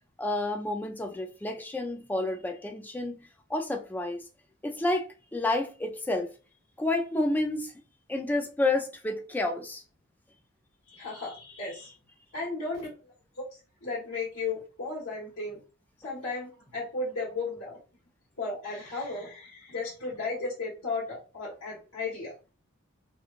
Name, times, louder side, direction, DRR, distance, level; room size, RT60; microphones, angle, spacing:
voice 1, 0.2-4.3 4.6-6.3 6.8-7.7 8.1-9.8, left 2 dB, 10° left, 0.3 m, -30 dB
voice 2, 10.9-11.9 12.3-12.9 13.5-15.6 16.0-17.8 18.4-22.3, left 3 dB, 85° left, 1.3 m, -35 dB
3.0 x 2.3 x 2.4 m
head